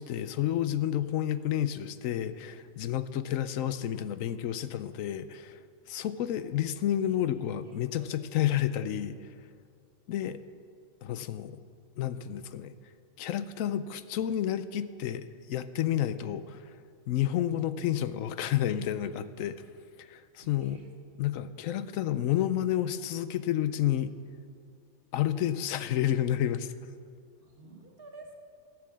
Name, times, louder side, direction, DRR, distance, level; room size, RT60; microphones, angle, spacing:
voice 1, 0.0-5.6 5.9-9.3 10.1-10.4 11.0-11.6 12.0-12.7 13.2-16.7 17.1-19.6 20.0-20.8 21.2-24.1 25.1-26.8, left 11 dB, 85° left, 13 dB, 1.0 m, -30 dB
voice 2, 7.0-8.1 20.4-20.9 27.4-28.4, right 3 dB, 50° right, 2 dB, 1.5 m, -51 dB
14.0 x 7.6 x 7.3 m, 2.2 s
omnidirectional pair, 1.3 m